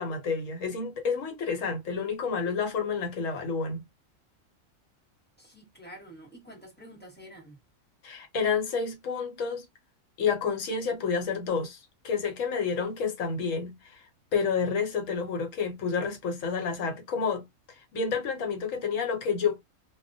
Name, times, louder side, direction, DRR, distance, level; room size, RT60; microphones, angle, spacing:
voice 1, 0.0-3.8 8.0-9.6 10.2-19.6, left 5 dB, 70° left, 1.1 m, -30 dB
voice 2, 5.4-7.6, equal, 10° left, 0.9 m, -48 dB
2.2 x 2.1 x 2.5 m
omnidirectional pair, 1.4 m